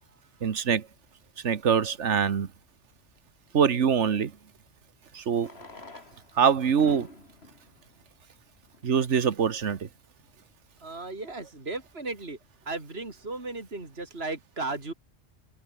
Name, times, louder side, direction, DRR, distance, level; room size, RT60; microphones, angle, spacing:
voice 1, 0.4-0.9 1.4-2.5 3.5-4.3 5.1-5.5 6.4-7.1 8.8-9.9, right 7 dB, 70° right, 1.6 m, -24 dB
Fireworks, 5.4-9.0 9.8-9.9 10.1-10.2 10.4-10.5 11.0-11.3, left 3 dB, 60° left, 3.3 m, -47 dB
voice 2, 10.8-12.4 12.7-14.9, right 3 dB, 55° right, 4.0 m, -35 dB
omnidirectional pair, 1.2 m